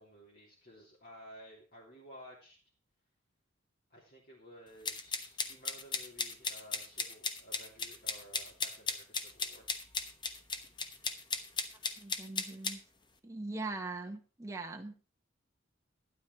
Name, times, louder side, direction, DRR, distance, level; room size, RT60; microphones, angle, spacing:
voice 1, 0.0-2.6 3.9-9.7, equal, 50° left, -4 dB, 3.5 m, -54 dB
sound 1, 4.8-12.8, left 4 dB, 20° left, 1.0 m, -36 dB
voice 2, 12.0-12.8 13.2-14.9, right 3 dB, 15° right, 3 dB, 1.1 m, -41 dB
12.5 x 10.0 x 4.5 m, 0.35 s
head